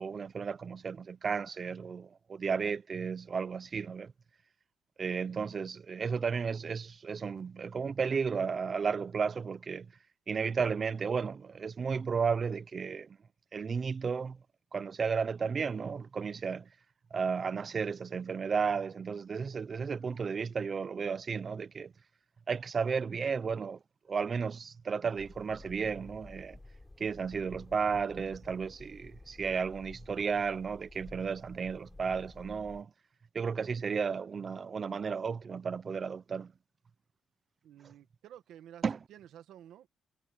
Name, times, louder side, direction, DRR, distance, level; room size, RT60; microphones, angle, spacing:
voice 1, 0.0-4.1 5.0-9.9 10.3-13.2 13.5-14.4 14.7-16.7 17.1-21.9 22.5-23.8 24.1-26.6 27.0-32.9 33.3-36.5 38.8-39.0, right 5 dB, 30° right, 0.5 m, -33 dB
sound 1, 25.1-32.8, left 2 dB, 10° left, 7.6 m, -53 dB
voice 2, 37.6-38.8 39.1-39.9, right 11 dB, 75° right, 1.5 m, -52 dB
cardioid pair, 180°, 0 cm